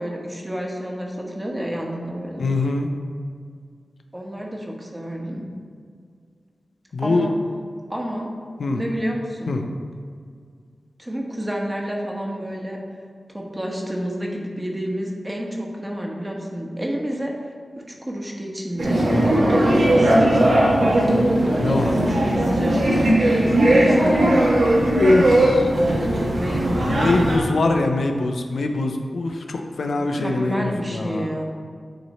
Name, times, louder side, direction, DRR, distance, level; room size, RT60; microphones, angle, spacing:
voice 1, 0.0-2.4 4.1-5.4 7.0-7.4 7.9-8.3 8.7-9.5 11.0-12.8 13.3-17.3 17.8-20.1 21.6-23.1 23.6-24.6 26.3-27.0 29.9-31.4, equal, 20° right, -1 dB, 1.2 m, -29 dB
voice 2, 2.4-2.9 6.9-7.3 8.6-8.8 9.5-9.6 21.6-22.2 25.0-25.7 26.9-31.3, left 2 dB, 80° left, 4 dB, 0.5 m, -22 dB
sound 1, 18.8-27.4, right 1 dB, 80° right, 1.4 m, -18 dB
9.2 x 3.1 x 4.2 m, 2.1 s
cardioid pair, 50°, 0 cm